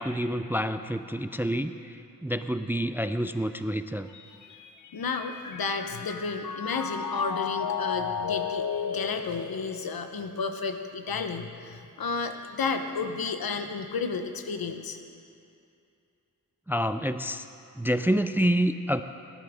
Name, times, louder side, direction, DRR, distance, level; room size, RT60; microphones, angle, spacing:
voice 1, 0.0-4.1 16.7-17.5 17.7-19.0, equal, 5° right, 10 dB, 0.3 m, -28 dB
Mallet percussion, 4.1-10.6, left 6 dB, 55° left, 0.7 m, -34 dB
voice 2, 4.9-15.0, left 4 dB, 80° left, 6 dB, 1.0 m, -32 dB
19.0 x 11.0 x 3.6 m, 2.5 s
wide cardioid pair, 90°, 35 cm